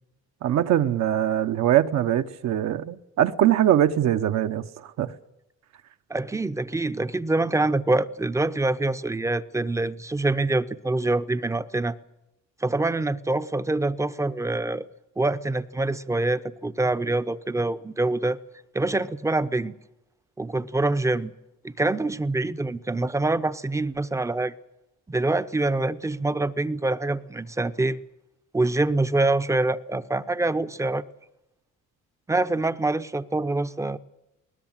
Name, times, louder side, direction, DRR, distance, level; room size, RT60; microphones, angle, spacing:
voice 1, 0.4-4.6 5.0-5.1, right 11 dB, 65° right, 1.1 m, -22 dB
voice 2, 6.1-12.0 12.6-14.9 15.2-18.4 18.7-19.7 20.4-21.3 21.6-24.5 25.1-28.0 28.5-31.0 32.3-34.0, right 2 dB, 10° right, 0.7 m, -25 dB
21.0 x 19.5 x 7.4 m
cardioid pair, 135°, 30 cm